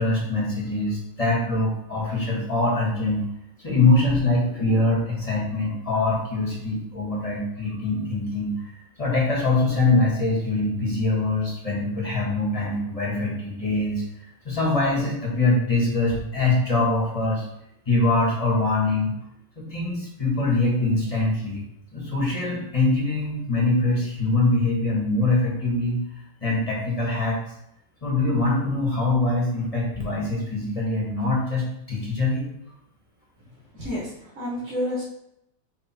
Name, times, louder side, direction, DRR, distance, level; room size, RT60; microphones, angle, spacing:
voice 1, 0.0-3.2 3.6-8.7 9.0-14.0 14.4-17.4 17.8-19.1 19.6-21.6 21.9-26.0 26.4-27.4 28.0-32.5, left 2 dB, 20° left, -4 dB, 1.3 m, -23 dB
voice 2, 33.7-35.0, left 1 dB, 35° right, -11 dB, 2.2 m, -29 dB
6.4 x 3.3 x 4.4 m, 0.78 s
omnidirectional pair, 2.4 m